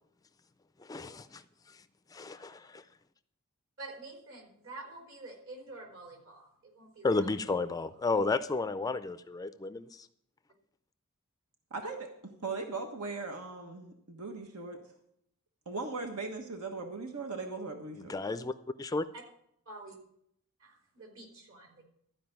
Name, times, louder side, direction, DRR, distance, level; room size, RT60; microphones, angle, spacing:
voice 1, 0.8-1.4 1.7-1.8 2.1-2.8 7.0-10.1 18.1-19.0, left 3 dB, 15° left, 12 dB, 0.3 m, -32 dB
voice 2, 3.8-7.7 11.8-11.9 19.1-19.2 19.7-20.0 20.6-21.8, right 2 dB, 65° right, 1 dB, 3.7 m, -48 dB
voice 3, 11.7-12.1 12.4-14.8 15.6-18.2, right 3 dB, 90° right, 3 dB, 1.3 m, -38 dB
13.0 x 5.1 x 9.0 m, 0.73 s
head